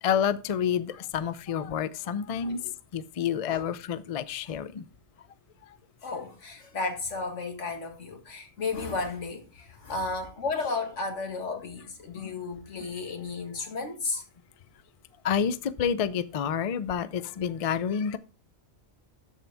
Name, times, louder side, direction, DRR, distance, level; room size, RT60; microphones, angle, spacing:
voice 1, 0.0-2.6 2.9-4.8 15.2-18.2, left 8 dB, 55° left, 0.4 m, -29 dB
voice 2, 2.3-2.7 3.5-3.7 4.5-4.6 6.0-14.2 17.4-17.5, left 3 dB, 85° left, 1.9 m, -34 dB
13.0 x 4.6 x 3.4 m
omnidirectional pair, 1.2 m